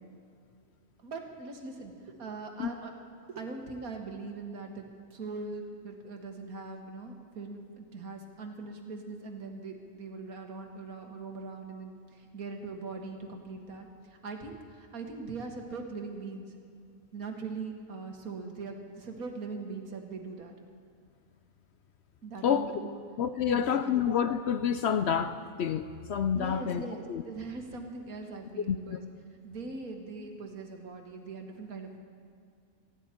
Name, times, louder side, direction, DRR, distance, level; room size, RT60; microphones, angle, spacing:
voice 1, 1.0-2.9 3.3-16.5 17.1-20.5 22.2-23.0 23.4-24.0 26.3-29.0 29.4-32.0, right 3 dB, 85° right, 3 dB, 2.0 m, -41 dB
voice 2, 23.2-27.2 28.7-29.0, left 8 dB, 65° left, 10 dB, 0.7 m, -28 dB
19.0 x 15.0 x 4.5 m, 2.3 s
omnidirectional pair, 1.5 m